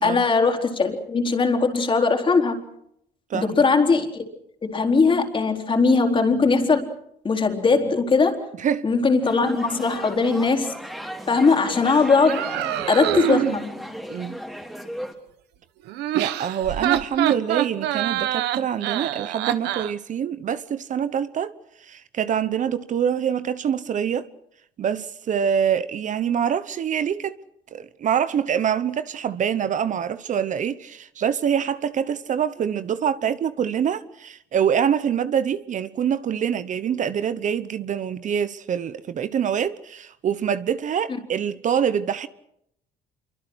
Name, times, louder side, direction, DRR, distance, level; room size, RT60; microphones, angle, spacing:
voice 1, 0.0-2.6 3.3-4.1 4.6-6.9 7.2-8.4 8.8-10.7 11.3-12.5 12.9-13.9, left 4 dB, 30° left, 4.2 m, -20 dB
voice 2, 3.3-3.7 8.6-8.9 14.1-14.4 16.1-21.5 21.8-24.3 24.8-27.3 27.7-42.3, right 8 dB, 50° right, 1.0 m, -25 dB
sound 1, 9.2-15.1, equal, ahead, 3.3 m, -36 dB
sound 2, 12.3-13.6 15.9-19.9, right 13 dB, 85° right, 1.3 m, -25 dB
27.0 x 24.0 x 6.3 m
cardioid pair, 110°, 17 cm